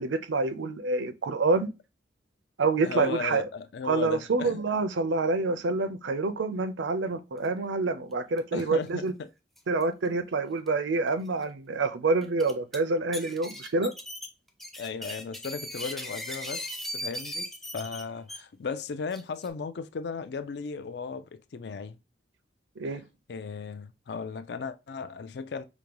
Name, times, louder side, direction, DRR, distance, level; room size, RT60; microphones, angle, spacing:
voice 1, 0.0-1.7 2.6-3.5 3.8-9.1 9.7-13.9 22.8-23.0, right 3 dB, 85° right, 0.5 m, -27 dB
voice 2, 2.8-4.6 8.5-9.3 14.8-22.0 22.9-23.0 23.3-25.6, left 5 dB, 60° left, 0.4 m, -36 dB
sound 1, 8.4-8.6 8.9-9.0 9.6-9.8 10.7-10.8 11.3-11.4 12.2-12.8 13.1-18.4 19.1-19.5, equal, ahead, 0.4 m, -38 dB
5.1 x 2.2 x 3.0 m
head